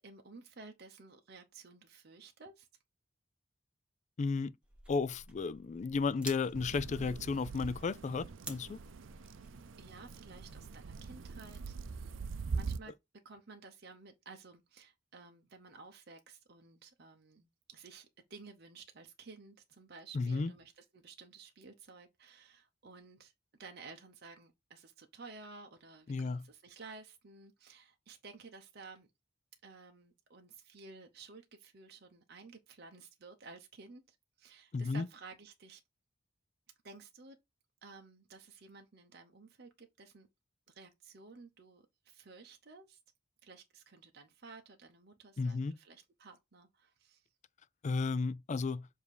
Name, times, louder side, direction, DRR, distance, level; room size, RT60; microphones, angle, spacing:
voice 1, 0.0-2.7 9.8-11.8 12.5-12.9 13.2-23.3 23.6-29.1 29.6-35.8 36.8-37.4 37.8-40.3 40.7-43.0 43.4-47.3, right 4 dB, 55° right, 0.8 m, -54 dB
voice 2, 4.2-4.5 4.9-8.8 20.1-20.5 26.1-26.4 34.7-35.1 45.4-45.7 47.8-48.9, left 4 dB, 40° left, 0.4 m, -33 dB
sound 1, 4.6-11.0, right 1 dB, 5° right, 1.4 m, -52 dB
sound 2, 6.5-12.8, right 4 dB, 85° right, 0.5 m, -43 dB
7.1 x 2.7 x 4.8 m
head